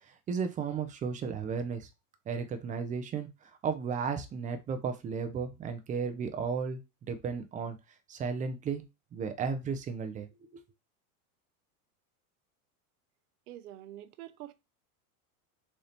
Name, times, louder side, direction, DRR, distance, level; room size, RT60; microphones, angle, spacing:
voice 1, 0.3-1.9 2.3-3.3 3.6-7.8 8.1-8.8 9.1-10.6, right 6 dB, 20° right, 0.4 m, -34 dB
voice 2, 13.5-14.5, right 13 dB, 85° right, 0.7 m, -46 dB
4.0 x 2.8 x 3.3 m
supercardioid pair, 125°, 44 cm